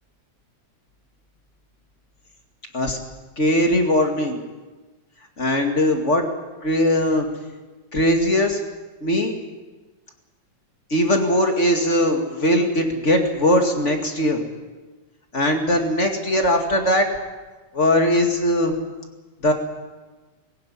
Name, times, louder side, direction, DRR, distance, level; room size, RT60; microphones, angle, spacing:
voice 1, 3.4-4.4 5.4-6.2 6.6-7.3 7.9-8.6 9.0-9.4 10.9-14.4 15.3-17.1 17.7-18.7 19.4-19.5, left 1 dB, 25° left, 3 dB, 2.2 m, -20 dB
20.5 x 17.0 x 9.9 m, 1.2 s
omnidirectional pair, 3.3 m